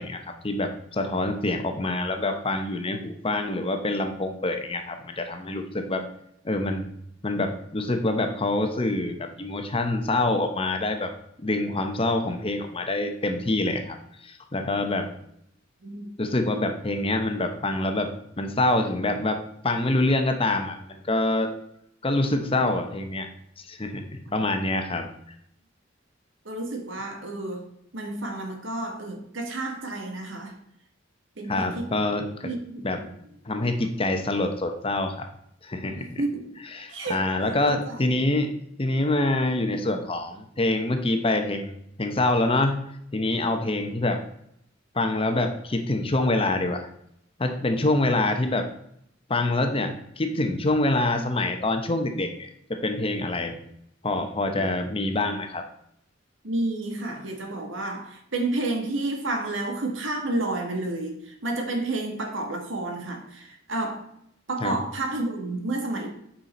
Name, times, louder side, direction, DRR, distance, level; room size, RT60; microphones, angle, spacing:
voice 1, 0.0-6.0 6.4-6.9 7.2-11.1 11.4-15.1 16.2-18.1 18.4-19.4 19.6-21.5 22.0-23.3 23.6-25.1 31.5-32.5 32.8-33.0 33.5-35.3 35.6-36.1 36.7-38.5 38.8-42.8 43.1-44.2 44.9-46.9 47.4-48.7 49.3-53.6 54.0-55.6 64.6-64.8, left 2 dB, 30° left, 6 dB, 0.8 m, -26 dB
voice 2, 26.5-27.7 27.9-30.6 31.4-31.9 32.4-33.1 33.8-33.9 35.9-36.5 36.9-37.2 37.7-38.1 54.5-54.8 56.4-64.1 64.5-66.1, right 2 dB, 70° right, 4 dB, 1.6 m, -30 dB
8.3 x 5.6 x 4.3 m, 0.72 s
head